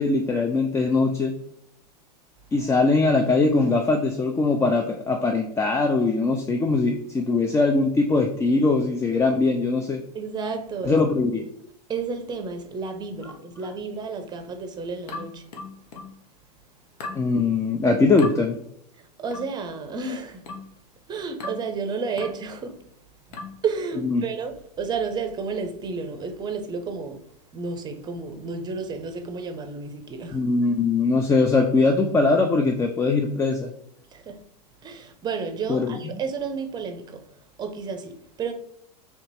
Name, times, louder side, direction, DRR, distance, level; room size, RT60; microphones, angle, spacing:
voice 1, 0.0-1.3 2.5-10.0 10.9-11.4 17.1-18.6 24.0-24.2 30.3-33.7 35.7-36.0, left 3 dB, 15° left, 0.4 m, -21 dB
voice 2, 10.1-11.0 11.9-15.4 19.0-20.4 21.1-22.8 23.3-27.2 27.5-30.4 34.1-34.4 34.8-37.2 37.6-38.5, right 5 dB, 20° right, 0.6 m, -31 dB
sound 1, 15.1-16.2 17.0-17.3 18.2-18.4 19.3-19.6 20.5-20.7 21.4-21.7 22.2-22.4 23.3-23.6, left 3 dB, 75° left, 1.1 m, -37 dB
3.4 x 2.9 x 4.1 m
hypercardioid pair, 120°, 21 cm